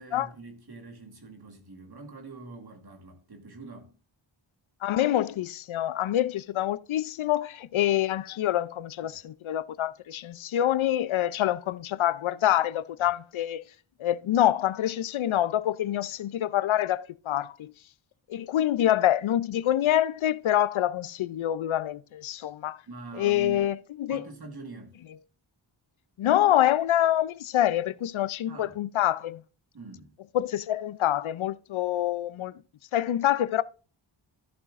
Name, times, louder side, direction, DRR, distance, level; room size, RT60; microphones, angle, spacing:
voice 1, 0.0-3.9 9.0-9.2 22.9-23.7 24.1-25.0 28.5-28.8 29.7-30.1, right 3 dB, 50° right, 1.6 m, -44 dB
voice 2, 4.8-13.6 14.0-17.7 18.3-22.8 23.1-24.2 26.2-29.4 30.3-32.6 32.9-33.6, left 12 dB, 75° left, 0.5 m, -26 dB
13.5 x 7.0 x 2.5 m
wide cardioid pair, 80°, 48 cm